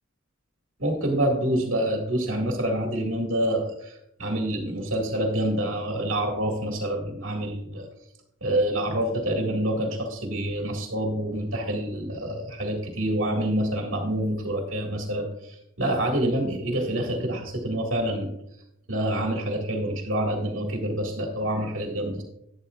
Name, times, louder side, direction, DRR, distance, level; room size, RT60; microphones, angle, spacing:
voice 1, 0.8-7.9 8.4-18.3 18.9-22.2, right 1 dB, 75° right, 1 dB, 1.9 m, -27 dB
11.5 x 10.5 x 2.4 m, 0.79 s
head